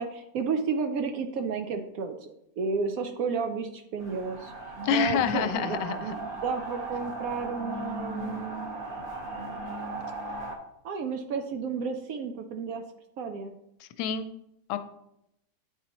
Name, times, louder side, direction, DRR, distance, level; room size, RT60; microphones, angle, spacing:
voice 1, 0.0-2.3 2.6-4.5 4.9-8.8 10.8-12.8 13.2-13.5, right 5 dB, 70° right, 6 dB, 0.9 m, -32 dB
sound 1, 4.0-10.6, right 2 dB, 40° right, 0.9 m, -37 dB
voice 2, 4.8-6.1 13.8-14.3 14.7-14.8, left 8 dB, 85° left, 10 dB, 1.2 m, -27 dB
9.2 x 4.2 x 2.9 m, 0.81 s
omnidirectional pair, 1.8 m